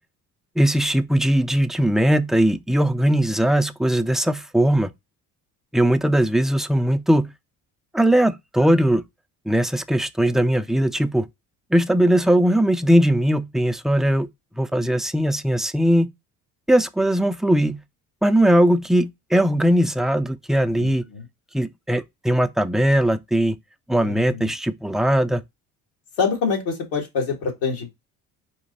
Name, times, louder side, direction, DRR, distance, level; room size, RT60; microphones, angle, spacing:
voice 1, 0.6-4.9 5.7-7.3 7.9-9.0 9.5-11.3 11.7-14.3 14.6-16.1 16.7-17.8 18.2-21.0 21.5-23.6 23.9-25.4, right 1 dB, ahead, 0.4 m, -19 dB
voice 2, 20.8-21.3 24.0-24.5 26.2-27.9, left 5 dB, 75° left, 1.8 m, -26 dB
4.3 x 2.8 x 3.9 m
hypercardioid pair, 55°, 42 cm